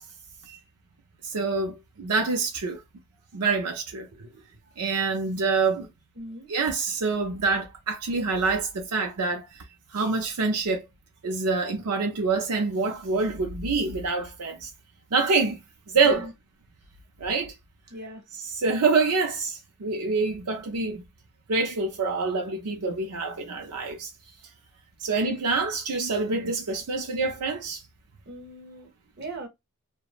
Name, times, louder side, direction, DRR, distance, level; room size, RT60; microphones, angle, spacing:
voice 1, 1.2-2.8 3.3-4.1 4.8-5.9 6.5-9.5 9.9-10.8 11.2-14.7 15.1-15.6 15.9-16.3 17.2-17.5 18.4-21.0 21.5-24.1 25.0-27.8, right 4 dB, 90° right, 0.5 m, -26 dB
voice 2, 4.1-4.4 6.2-6.5 16.0-16.1 17.9-18.2 28.3-28.9 29.2-29.5, right 2 dB, 50° right, 1.0 m, -40 dB
2.9 x 2.1 x 2.4 m
head